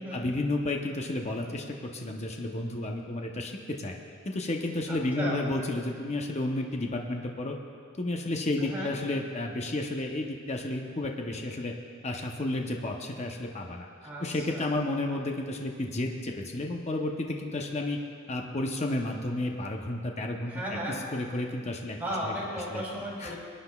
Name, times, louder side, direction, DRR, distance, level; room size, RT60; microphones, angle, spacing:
voice 1, 0.1-4.0 4.3-7.6 8.0-11.7 12.0-13.9 14.2-18.0 18.3-20.5 21.1-22.0 22.2-22.3 22.7-22.8 23.2-23.4, left 2 dB, 30° left, 2 dB, 0.7 m, -32 dB
voice 2, 4.9-5.4 8.6-9.0 14.0-14.7 20.5-21.0 21.9-23.4, equal, 10° right, -7 dB, 3.0 m, -35 dB
22.0 x 10.0 x 2.3 m, 2.2 s
head